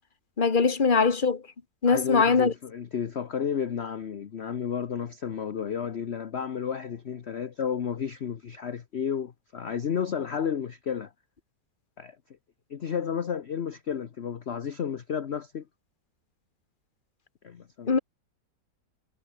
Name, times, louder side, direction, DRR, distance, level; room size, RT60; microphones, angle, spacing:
voice 1, 0.4-1.4 1.8-2.5 17.9-18.0, left 5 dB, 30° left, 1.6 m, -21 dB
voice 2, 1.9-11.1 12.0-12.2 12.7-15.6 17.4-18.0, left 7 dB, 45° left, 1.0 m, -32 dB
omnidirectional pair, 2.0 m